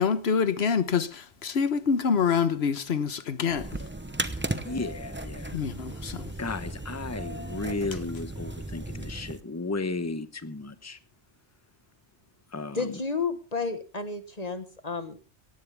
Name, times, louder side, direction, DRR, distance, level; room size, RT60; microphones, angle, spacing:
voice 1, 0.0-3.7 5.5-6.2, left 6 dB, 65° left, 1.3 m, -26 dB
sound 1, 3.5-9.4, right 1 dB, 10° right, 0.8 m, -36 dB
voice 2, 4.6-5.6 6.4-11.0 12.5-13.0, left 3 dB, 15° left, 1.0 m, -34 dB
voice 3, 12.7-15.2, left 4 dB, 35° left, 1.5 m, -31 dB
17.5 x 15.5 x 3.5 m
omnidirectional pair, 1.1 m